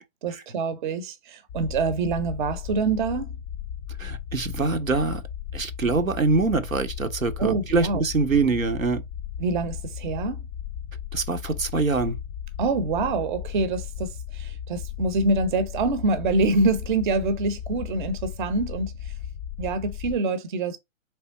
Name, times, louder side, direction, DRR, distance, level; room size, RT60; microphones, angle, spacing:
voice 1, 0.2-3.4 7.4-8.0 9.4-10.4 12.6-19.1 19.6-20.8, right 3 dB, 40° right, 0.7 m, -26 dB
sound 1, 1.5-20.2, left 10 dB, 20° left, 0.5 m, -36 dB
voice 2, 4.0-5.2 5.5-9.0 11.1-12.2, right 4 dB, 85° right, 0.9 m, -24 dB
3.5 x 3.4 x 4.0 m
figure-of-eight pair, 120°, 40 cm